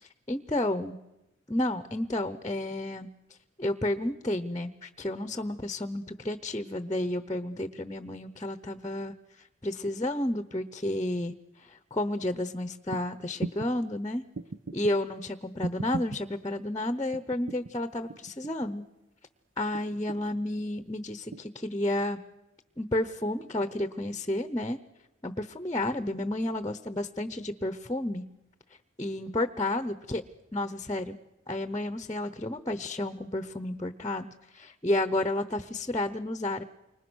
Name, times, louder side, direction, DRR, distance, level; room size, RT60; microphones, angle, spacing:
voice 1, 0.3-1.0 1.5-3.1 3.6-9.1 9.6-11.3 11.6-14.2 14.7-18.8 19.6-22.2 22.8-24.8 25.2-28.2 29.0-30.2 30.5-31.2 31.5-34.3 34.5-36.6, left 1 dB, 20° left, 11 dB, 0.8 m, -31 dB
sound 1, 12.9-13.0 13.4-13.7 14.3-14.9 15.6-16.2 17.1-17.7 18.1-18.7 19.7-20.4 21.3-21.4, right 2 dB, 70° right, 0.8 m, -36 dB
29.5 x 25.5 x 6.3 m, 0.96 s
head